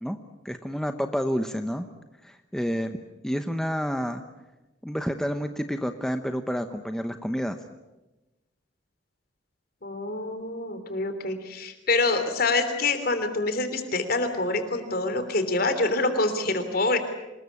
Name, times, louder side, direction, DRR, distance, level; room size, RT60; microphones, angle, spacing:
voice 1, 0.4-1.8 2.2-3.0 3.2-4.2 4.8-7.6, equal, 5° left, 7 dB, 0.9 m, -29 dB
voice 2, 9.8-17.0, left 2 dB, 50° left, 9 dB, 3.4 m, -26 dB
26.0 x 21.0 x 8.5 m, 1.1 s
head